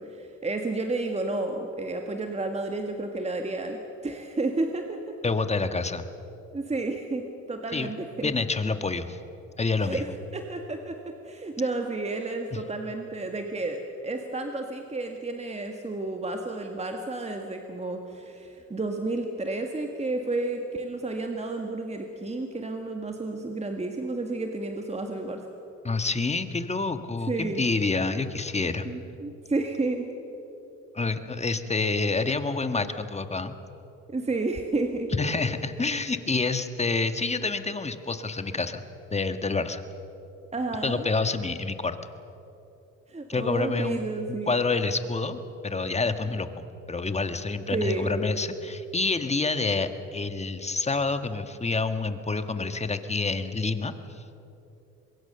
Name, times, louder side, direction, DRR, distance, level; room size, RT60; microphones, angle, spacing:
voice 1, 0.0-5.2 6.5-7.2 7.5-8.3 9.8-25.5 27.3-27.6 28.8-30.1 34.1-35.1 40.5-41.1 43.1-44.5 47.7-48.1, right 2 dB, 20° right, 4 dB, 1.8 m, -31 dB
voice 2, 5.2-6.0 7.7-7.9 8.2-9.2 9.6-10.0 12.5-12.6 25.8-28.9 30.9-33.6 35.2-38.8 39.1-39.8 40.8-42.0 43.3-44.0 44.3-54.2, left 3 dB, 20° left, 9 dB, 1.5 m, -28 dB
24.0 x 22.0 x 6.8 m, 3.0 s
cardioid pair, 90°, 30 cm